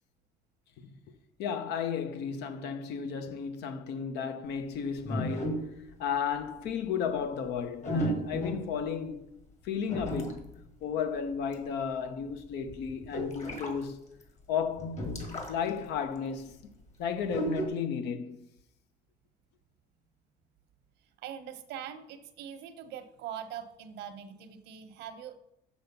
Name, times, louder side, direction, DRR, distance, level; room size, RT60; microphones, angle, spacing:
voice 1, 1.4-5.7 6.0-9.2 9.6-10.5 10.8-14.0 14.5-15.0 15.5-16.7 17.0-18.4, left 7 dB, 85° left, 0.9 m, -33 dB
sound 1, 5.0-5.9 6.4-6.7 7.8-8.8 9.9-10.6 11.3-11.5 11.8-11.9 12.3-13.7 14.2-14.3 14.7-15.7 16.0-16.1 17.3-17.7, equal, 45° left, 1.9 m, -34 dB
voice 2, 21.2-25.4, right 9 dB, 85° right, 0.9 m, -42 dB
7.0 x 6.3 x 5.4 m
cardioid pair, 110°, 17 cm